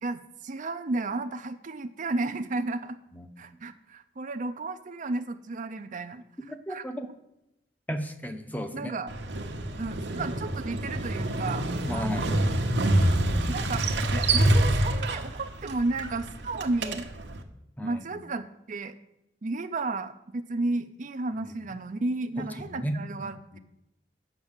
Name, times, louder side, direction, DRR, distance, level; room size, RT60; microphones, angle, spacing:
voice 1, 0.0-3.0 3.4-6.2 6.7-6.8 8.7-9.1 9.8-12.3 13.5-17.1 17.8-19.0 19.4-23.6, right 2 dB, 45° right, 9 dB, 0.5 m, -33 dB
voice 2, 6.7-7.1 7.9-8.9 11.9-12.3 13.5-13.9 17.8-18.0 21.4-21.5 22.4-23.6, equal, 10° left, 6 dB, 0.7 m, -35 dB
Motorcycle, 9.1-17.4, right 1 dB, 75° right, 1.0 m, -27 dB
8.0 x 6.1 x 7.3 m, 0.86 s
head